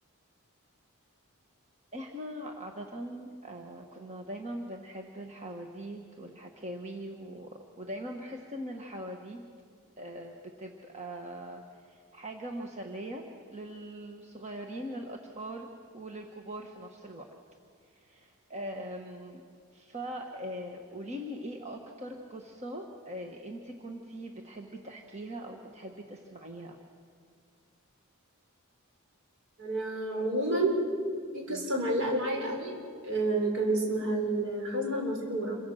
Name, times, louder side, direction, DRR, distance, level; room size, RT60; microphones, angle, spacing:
voice 1, 1.9-9.4 10.0-13.2 13.5-17.3 17.9-19.4 19.7-26.8 31.5-31.6, right 1 dB, 30° right, 2 dB, 1.4 m, -41 dB
voice 2, 29.6-30.8 31.3-32.8 33.0-35.6, right 2 dB, 60° right, 0 dB, 6.2 m, -29 dB
28.0 x 23.5 x 6.5 m, 2.1 s
head